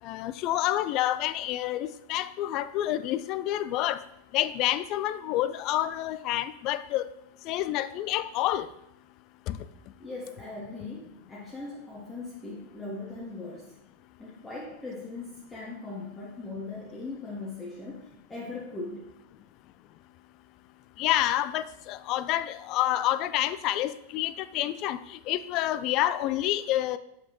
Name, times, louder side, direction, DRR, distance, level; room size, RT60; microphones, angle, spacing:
voice 1, 0.0-4.0 4.3-7.1 7.5-8.7 9.5-9.6 21.0-27.0, left 13 dB, 40° left, 14 dB, 0.3 m, -28 dB
voice 2, 10.0-13.8 14.2-19.1, left 3 dB, 10° left, -5 dB, 1.1 m, -39 dB
7.7 x 5.9 x 3.0 m, 0.80 s
figure-of-eight pair, 90°, 0 cm